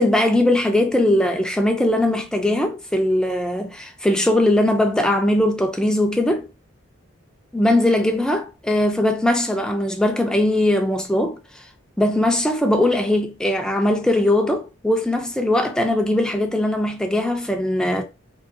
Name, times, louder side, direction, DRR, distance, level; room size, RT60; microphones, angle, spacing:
voice 1, 0.0-6.5 7.5-11.4 12.0-18.0, left 1 dB, 5° left, 0.5 m, -20 dB
3.8 x 2.9 x 2.7 m
head